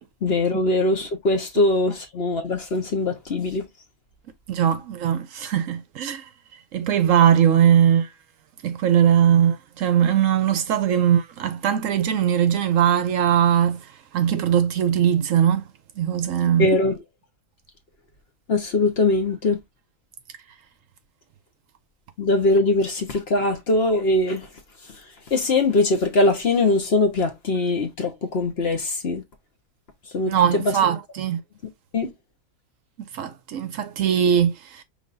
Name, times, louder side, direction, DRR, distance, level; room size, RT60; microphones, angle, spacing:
voice 1, 0.2-3.7 16.6-17.0 18.5-19.6 22.2-24.5 25.3-29.2 30.1-30.7 31.9-32.1, left 2 dB, 50° left, 1.1 m, -21 dB
voice 2, 4.5-8.1 8.6-15.7 16.0-16.7 30.3-31.4 33.1-34.8, right 9 dB, 70° right, 0.9 m, -20 dB
5.3 x 3.4 x 2.5 m
omnidirectional pair, 1.6 m